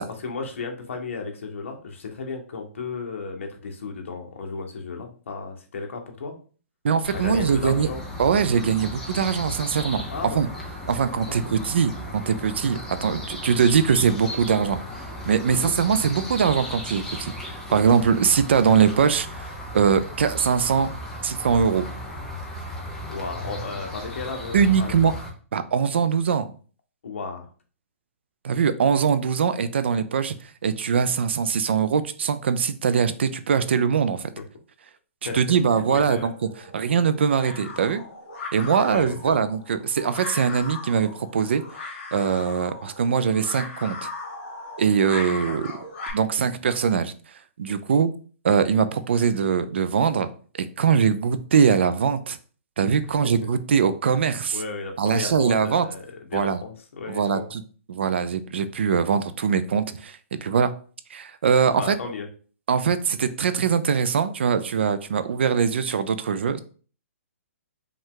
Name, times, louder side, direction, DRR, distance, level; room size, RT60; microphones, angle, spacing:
voice 1, 0.1-6.3 7.1-8.0 10.1-10.4 11.3-11.5 15.5-15.7 23.1-25.1 27.0-27.5 35.2-36.3 38.8-39.4 45.5-45.6 53.0-53.3 54.5-57.4 61.7-62.3, left 4 dB, 60° left, 3 dB, 1.1 m, -34 dB
voice 2, 6.8-7.9 8.2-10.0 10.3-10.5 10.9-14.8 15.3-20.9 21.2-21.8 24.5-25.1 25.5-26.5 28.4-30.3 30.6-34.3 35.3-36.3 36.7-38.0 38.5-41.6 42.1-44.1 44.8-45.7 46.1-47.1 47.6-48.1 48.4-50.3 50.8-52.4 52.8-54.6 55.0-55.9 56.3-56.6 57.1-57.6 57.9-60.7 61.1-62.0 62.7-66.6, right 6 dB, 50° right, 12 dB, 0.4 m, -22 dB
sound 1, 7.0-25.3, left 1 dB, 5° left, 0.5 m, -36 dB
sound 2, 36.2-46.1, left 3 dB, 30° left, 2.0 m, -38 dB
5.2 x 2.4 x 3.7 m, 0.40 s
hypercardioid pair, 180°, 8 cm